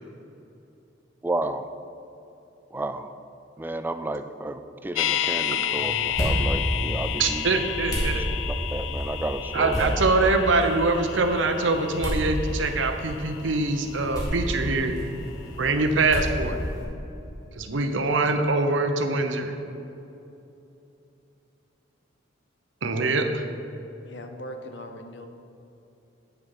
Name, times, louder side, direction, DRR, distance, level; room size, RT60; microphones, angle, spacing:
voice 1, 1.2-1.7 2.7-3.1 3.6-7.4 8.7-10.0, right 1 dB, 10° right, 9 dB, 0.3 m, -31 dB
sound 1, 4.9-15.0 15.3-15.4, left 10 dB, 85° left, 0.3 m, -32 dB
sound 2, 5.7-16.8, equal, 20° left, 2.3 m, -31 dB
voice 2, 7.2-8.2 9.5-14.9 15.6-16.6 17.6-19.5 22.8-23.4, right 3 dB, 80° right, 6 dB, 0.8 m, -24 dB
voice 3, 24.0-25.3, equal, 65° left, 6 dB, 0.8 m, -39 dB
8.4 x 6.8 x 5.4 m, 2.9 s
head